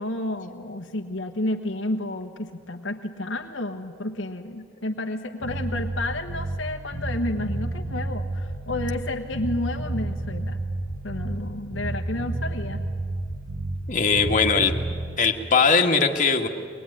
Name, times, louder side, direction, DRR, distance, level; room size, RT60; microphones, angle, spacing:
voice 1, 0.0-10.6 11.0-12.8, left 1 dB, 70° left, 4 dB, 1.2 m, -31 dB
Bass guitar, 5.4-6.7 6.9-9.1 9.3-11.5 11.7-13.9 14.1-15.0, right 2 dB, 35° right, 7.8 m, -30 dB
voice 2, 13.9-14.7 15.2-16.5, left 5 dB, 40° left, 2 dB, 1.8 m, -20 dB
22.5 x 20.5 x 10.0 m, 2.2 s
head